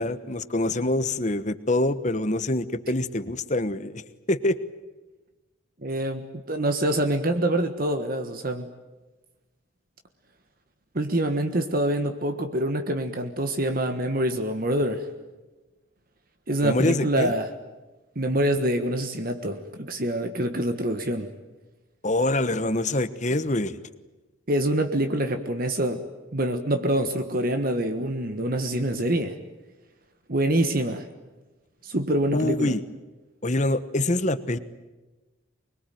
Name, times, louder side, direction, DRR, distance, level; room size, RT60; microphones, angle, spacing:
voice 1, 0.0-4.0 4.3-4.6 16.6-17.3 22.0-23.8 32.3-32.8 33.4-34.6, left 2 dB, 35° left, 12 dB, 1.2 m, -25 dB
voice 2, 5.8-8.7 10.9-15.1 16.5-17.5 18.1-21.3 24.5-26.0 26.3-29.4 30.3-31.1 31.8-32.8, right 1 dB, 45° right, 7 dB, 1.5 m, -25 dB
25.0 x 22.0 x 9.3 m, 1.1 s
head